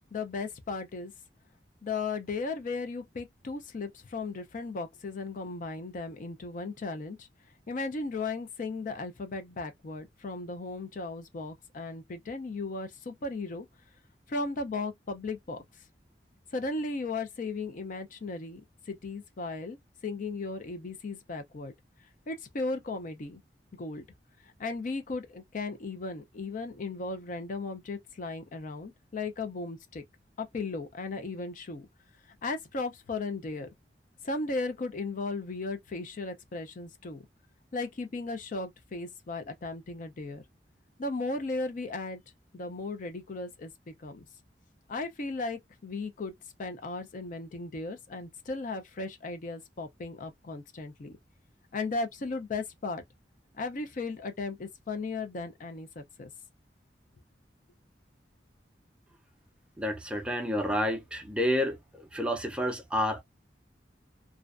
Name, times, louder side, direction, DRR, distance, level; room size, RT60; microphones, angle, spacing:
voice 1, 0.1-1.1 1.8-7.3 7.7-13.7 14.3-15.6 16.5-18.6 18.9-19.8 20.0-21.7 22.3-23.4 23.7-24.1 24.4-30.0 30.4-31.9 32.3-33.7 34.2-37.2 37.7-40.4 41.0-42.2 42.5-44.2 44.9-46.3 46.6-51.2 51.7-53.0 53.5-56.3, left 3 dB, 50° left, 0.5 m, -36 dB
voice 2, 59.8-63.2, equal, 5° right, 0.5 m, -30 dB
2.4 x 2.1 x 2.4 m
head